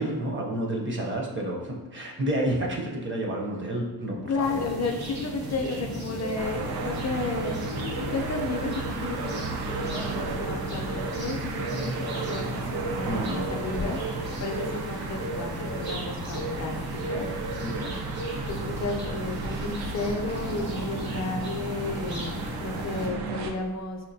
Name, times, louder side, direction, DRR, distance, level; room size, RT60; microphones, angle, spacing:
voice 1, 0.0-4.6 13.0-13.9 17.6-18.2, right 1 dB, 30° right, -1 dB, 0.6 m, -30 dB
voice 2, 4.3-7.5 8.1-14.0 14.4-16.8 17.1-17.3 18.5-24.0, left 3 dB, 45° left, 3 dB, 0.5 m, -32 dB
sound 1, 4.4-23.1, right 1 dB, 65° right, 0.9 m, -34 dB
sound 2, 6.4-23.5, right 3 dB, 85° right, 0.5 m, -36 dB
4.2 x 2.6 x 2.6 m, 1.2 s
wide cardioid pair, 120°, 38 cm